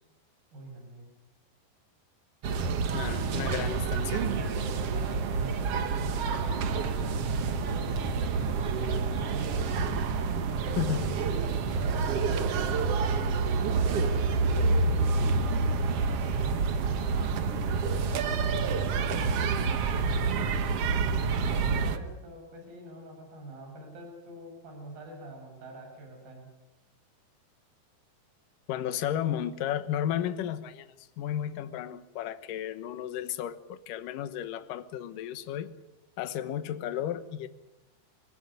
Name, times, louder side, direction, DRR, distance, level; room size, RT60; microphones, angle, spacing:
voice 1, 0.5-1.1 3.0-3.8 4.3-9.7 10.5-11.0 11.7-14.2 16.4-18.3 21.5-26.5, right 2 dB, 60° right, 1 dB, 8.3 m, -45 dB
sound 1, 2.4-22.0, right 4 dB, 80° right, 1.3 m, -28 dB
voice 2, 2.9-4.2 10.8-11.2 21.7-21.9 28.7-35.7 36.2-37.5, left 10 dB, 65° left, 12 dB, 2.4 m, -33 dB
24.0 x 17.5 x 9.8 m, 0.97 s
omnidirectional pair, 4.8 m